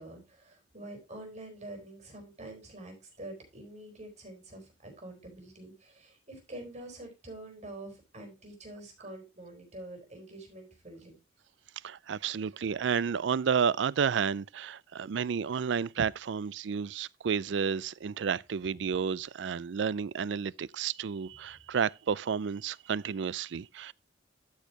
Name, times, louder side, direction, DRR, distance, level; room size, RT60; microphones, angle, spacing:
voice 1, 0.0-11.2, right 1 dB, 40° right, 4.3 m, -46 dB
voice 2, 11.8-23.9, right 6 dB, 70° right, 0.4 m, -31 dB
13.5 x 6.4 x 2.9 m
head